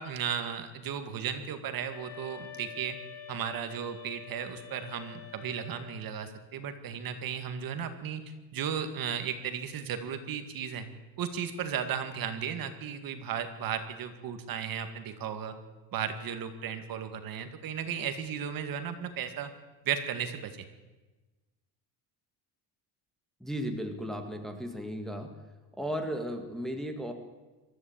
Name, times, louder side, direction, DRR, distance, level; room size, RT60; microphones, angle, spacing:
voice 1, 0.0-3.0 3.3-8.2 8.5-10.9 11.2-15.5 15.9-19.5 19.9-20.7, right 8 dB, 50° right, 8 dB, 2.1 m, -35 dB
sound 1, 1.9-6.0, left 9 dB, 75° left, 3.1 m, -47 dB
voice 2, 23.4-25.4 25.8-27.1, equal, ahead, 3 dB, 1.7 m, -35 dB
22.5 x 14.0 x 8.8 m, 1.2 s
cardioid pair, 170°, 45 cm